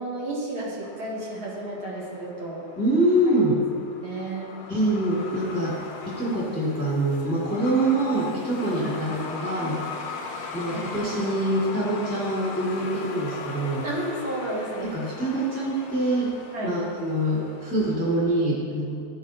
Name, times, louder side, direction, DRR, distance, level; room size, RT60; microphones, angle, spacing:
voice 1, 0.0-2.6 3.4-3.5 4.0-4.5 8.8-9.0 10.7-10.9 13.8-15.0 16.5-16.8, right 2 dB, 70° right, -7 dB, 2.9 m, -32 dB
Truck, 0.8-18.3, left 4 dB, 85° left, 1.7 m, -39 dB
voice 2, 2.8-3.6 4.7-5.8 6.1-9.8 10.5-13.8 14.8-16.3 16.6-19.0, right 1 dB, 10° left, -6 dB, 1.3 m, -25 dB
13.0 x 8.0 x 2.7 m, 2.4 s
omnidirectional pair, 2.3 m